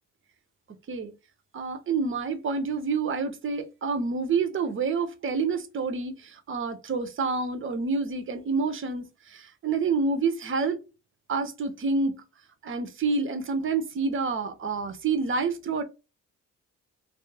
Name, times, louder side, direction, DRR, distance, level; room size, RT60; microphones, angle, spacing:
voice 1, 1.5-6.1 6.5-9.1 9.3-10.8 11.3-12.1 12.6-15.8, right 4 dB, 40° right, 0.7 m, -28 dB
2.4 x 2.0 x 3.1 m
cardioid pair, 90°, 30 cm